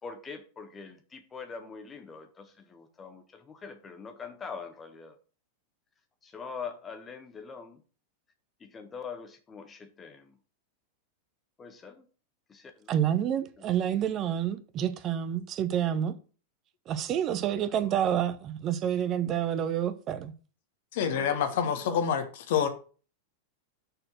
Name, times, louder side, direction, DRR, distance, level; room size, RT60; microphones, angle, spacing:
voice 1, 0.0-5.2 6.2-7.8 8.6-10.4 11.6-12.1 12.5-13.6 17.6-17.9 21.1-22.0, left 5 dB, 20° left, 1.4 m, -44 dB
voice 2, 12.9-16.1 16.9-20.3, right 10 dB, 35° right, 0.8 m, -28 dB
voice 3, 20.9-22.7, left 8 dB, 55° left, 1.3 m, -27 dB
6.7 x 4.4 x 6.1 m
figure-of-eight pair, 90°, 0 cm